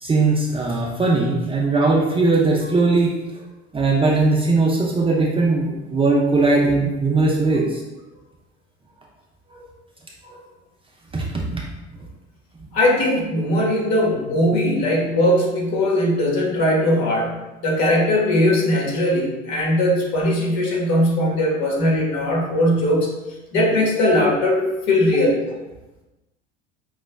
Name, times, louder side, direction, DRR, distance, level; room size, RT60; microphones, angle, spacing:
voice 1, 0.0-3.1 3.7-7.8 9.5-9.6 11.1-11.6, right 3 dB, 15° right, -3 dB, 0.6 m, -19 dB
voice 2, 12.7-23.1 23.5-25.4, left 1 dB, 50° left, -2 dB, 1.4 m, -19 dB
5.3 x 3.1 x 2.2 m, 1.1 s
figure-of-eight pair, 70°, 35 cm